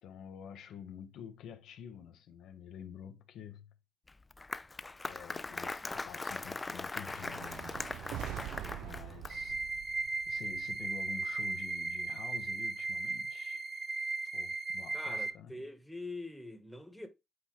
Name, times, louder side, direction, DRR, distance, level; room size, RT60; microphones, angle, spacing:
voice 1, 0.0-3.7 5.1-8.3 8.8-9.6 10.3-13.6 14.3-15.5, left 8 dB, 80° left, 0.9 m, -49 dB
Applause, 4.1-9.6, left 3 dB, 20° left, 0.3 m, -40 dB
sound 1, 7.0-11.3, right 13 dB, 85° right, 0.3 m, -45 dB
voice 2, 8.4-8.8 14.9-17.1, left 2 dB, 5° left, 1.1 m, -45 dB
sound 2, 9.3-15.3, right 3 dB, 35° right, 0.7 m, -36 dB
7.7 x 4.1 x 3.1 m
cardioid pair, 90°, 0 cm